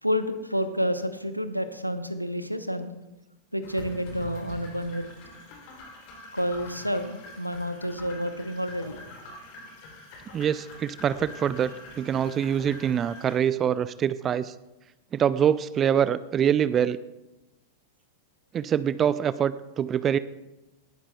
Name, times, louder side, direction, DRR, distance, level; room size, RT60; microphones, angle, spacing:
voice 1, 0.0-2.9 3.5-5.1 6.3-9.0, equal, 90° right, 10 dB, 0.8 m, -29 dB
sound 1, 3.6-13.4, left 2 dB, 45° left, 2.9 m, -45 dB
voice 2, 10.3-14.5 15.1-17.0 18.5-20.2, right 9 dB, 25° right, 16 dB, 0.3 m, -25 dB
18.5 x 12.0 x 2.2 m, 1.0 s
figure-of-eight pair, 90°, 0 cm